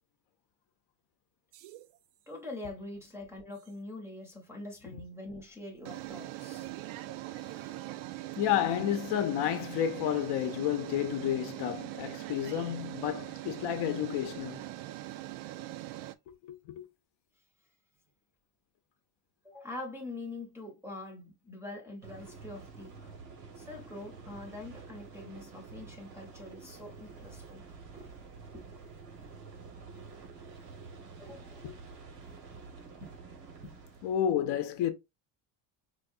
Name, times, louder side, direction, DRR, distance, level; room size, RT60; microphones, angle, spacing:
sound 1, 1.5-2.0 3.7-3.8 5.9-16.2, right 16 dB, 70° right, 0.6 m, -41 dB
voice 1, 2.3-6.7 8.0-8.2 19.4-23.0 23.6-27.6 27.9-28.2 28.5-28.7 29.9-30.1 31.2-31.7 33.0-33.1 33.6-33.7, left 2 dB, 5° right, 0.7 m, -44 dB
voice 2, 8.4-14.7 16.4-16.8 31.6-31.7 34.0-34.9, left 10 dB, 55° left, 0.7 m, -31 dB
sound 2, 22.0-34.2, right 4 dB, 90° right, 1.8 m, -49 dB
4.7 x 2.3 x 2.5 m
cardioid pair, 165°, 49 cm